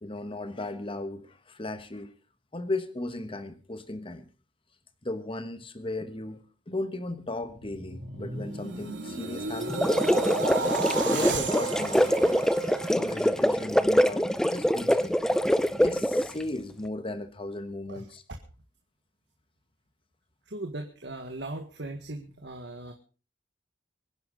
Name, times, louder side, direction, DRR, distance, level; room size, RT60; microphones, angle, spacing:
voice 1, 0.0-2.1 2.5-4.3 5.0-9.9 10.9-15.2 15.7-18.2, left 2 dB, 30° left, 9 dB, 1.3 m, -36 dB
sound 1, 7.3-13.6 14.0-14.3, right 3 dB, 85° right, 2.9 m, -33 dB
sound 2, 9.6-16.4, equal, 5° left, 0.7 m, -24 dB
voice 2, 20.5-22.9, right 2 dB, 65° right, 4 dB, 1.8 m, -38 dB
25.0 x 10.5 x 4.0 m, 0.36 s
head